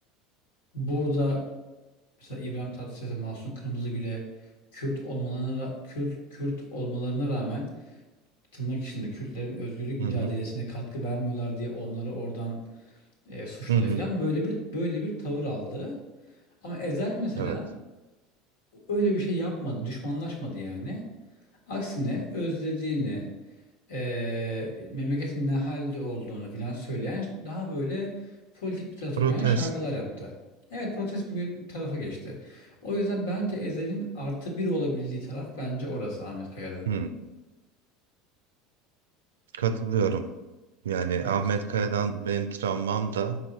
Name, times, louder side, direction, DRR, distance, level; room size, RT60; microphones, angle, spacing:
voice 1, 0.7-1.5 2.2-4.2 4.7-7.7 8.5-12.7 13.2-16.0 16.6-17.7 18.9-21.1 21.7-23.3 23.9-30.3 30.7-36.9 41.2-41.4, equal, 80° left, -1 dB, 1.7 m, -31 dB
voice 2, 10.0-10.3 13.7-14.0 17.4-17.6 29.2-29.7 36.9-37.1 39.5-40.3 40.8-43.4, right 6 dB, 80° right, 10 dB, 0.4 m, -27 dB
4.9 x 4.8 x 4.0 m, 1.1 s
hypercardioid pair, 75°, 0 cm